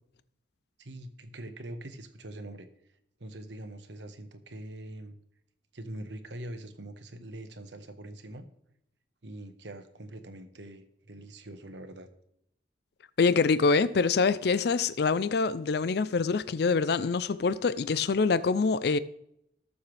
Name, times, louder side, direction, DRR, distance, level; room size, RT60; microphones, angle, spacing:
voice 1, 0.8-2.7 3.2-5.2 5.7-8.5 9.2-12.1, right 1 dB, 75° right, 1.4 m, -43 dB
voice 2, 13.2-19.0, left 4 dB, 60° left, 0.4 m, -25 dB
19.5 x 7.1 x 3.4 m
head